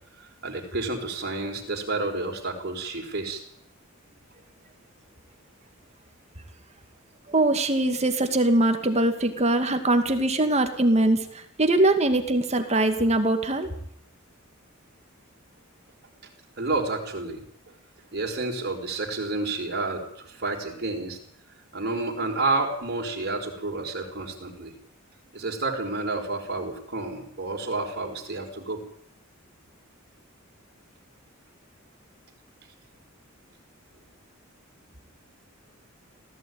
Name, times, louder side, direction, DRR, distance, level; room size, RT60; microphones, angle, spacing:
voice 1, 0.2-3.4 16.6-17.7 18.1-21.2 21.7-24.7 25.3-28.8, right 3 dB, 50° right, 1 dB, 4.8 m, -30 dB
voice 2, 7.3-11.3 11.6-13.7, right 2 dB, 30° right, 6 dB, 2.3 m, -22 dB
18.5 x 15.0 x 9.5 m, 0.70 s
head